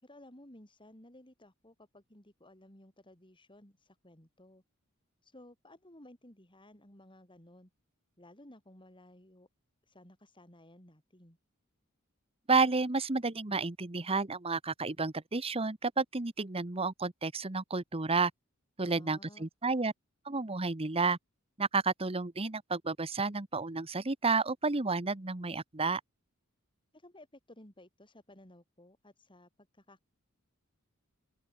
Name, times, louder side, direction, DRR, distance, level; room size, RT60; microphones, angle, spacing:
voice 1, 0.0-4.6 5.2-7.7 8.2-9.5 9.9-11.4 18.8-19.5 26.9-30.1, left 1 dB, 25° left, 6.5 m, -56 dB
voice 2, 12.5-18.3 18.8-19.9 20.3-21.2 21.6-26.0, right 4 dB, 25° right, 1.1 m, -31 dB
head